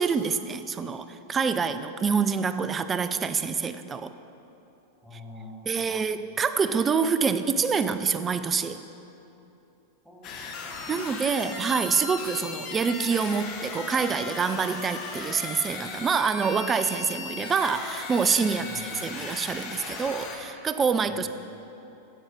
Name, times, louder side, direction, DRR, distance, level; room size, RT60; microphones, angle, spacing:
voice 1, 0.0-4.1 5.7-8.8 10.9-18.7 19.0-21.3, right 5 dB, 20° right, 11 dB, 0.4 m, -26 dB
voice 2, 5.0-6.2 10.0-11.5 18.4-19.0 21.0-21.3, left 2 dB, 5° right, -2 dB, 1.5 m, -47 dB
sound 1, 10.2-20.4, left 4 dB, 40° left, 1.0 m, -37 dB
8.8 x 7.1 x 5.1 m, 2.9 s
figure-of-eight pair, 90°, 0 cm